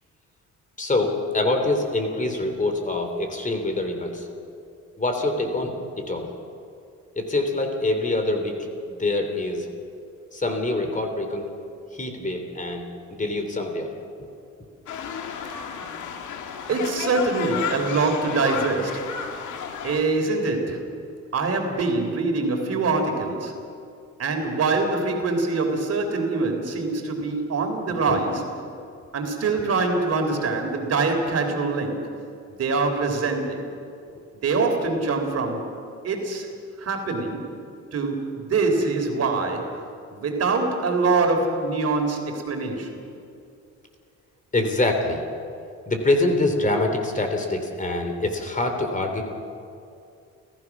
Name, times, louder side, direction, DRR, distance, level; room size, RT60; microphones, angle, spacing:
voice 1, 0.8-4.3 5.0-6.3 7.1-8.6 8.9-9.7 10.3-11.5 11.9-13.9 14.2-14.3 27.6-28.2 28.8-28.9 34.1-34.2 44.5-45.2 45.9-49.2, left 2 dB, 25° left, 4 dB, 3.4 m, -25 dB
sound 1, 14.9-20.0, left 7 dB, 80° left, 1.8 m, -32 dB
voice 2, 16.7-19.0 19.8-20.8 21.3-23.5 24.2-28.4 29.1-32.1 32.6-33.6 34.4-35.6 36.0-36.5 36.8-37.4 37.9-39.7 40.1-43.0, right 3 dB, 55° right, 4 dB, 3.7 m, -24 dB
30.0 x 15.0 x 6.2 m, 2.5 s
cardioid pair, 90°, 30 cm